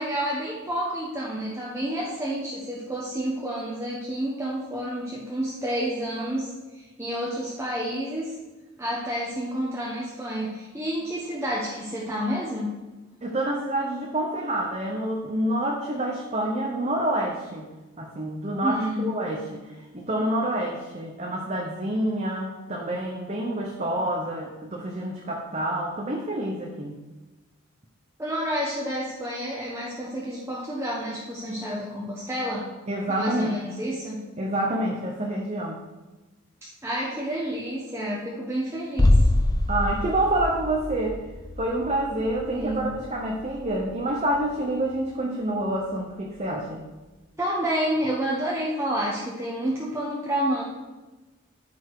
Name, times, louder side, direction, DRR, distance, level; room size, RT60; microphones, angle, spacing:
voice 1, 0.0-8.3 8.8-12.7 18.6-19.1 28.2-32.6 33.1-34.2 36.6-39.2 42.5-42.9 47.4-50.6, equal, 15° right, -6 dB, 1.1 m, -29 dB
voice 2, 13.2-17.7 18.0-27.0 32.9-33.6 34.4-35.8 39.7-41.2 41.6-46.8, right 1 dB, 30° right, -1 dB, 0.9 m, -28 dB
sound 1, 39.0-44.7 45.0-45.1, left 1 dB, 20° left, 0.3 m, -25 dB
13.0 x 4.5 x 4.8 m, 1.2 s
head